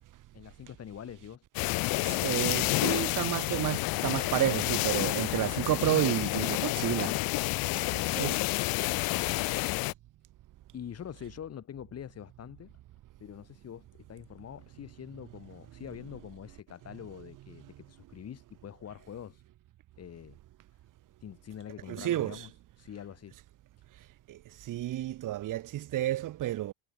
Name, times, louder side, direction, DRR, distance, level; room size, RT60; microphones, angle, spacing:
voice 1, 0.3-1.4 8.8-9.8 10.7-12.7 13.2-19.4 20.0-20.4 21.2-22.5 22.8-23.4, left 9 dB, 30° left, 6.1 m, -45 dB
sound 1, 1.5-9.9, left 22 dB, 45° left, 1.0 m, -29 dB
voice 2, 2.0-7.1 7.7-8.4 21.9-22.5 24.3-26.7, right 14 dB, 40° right, 2.1 m, -31 dB
supercardioid pair, 135°, 49 cm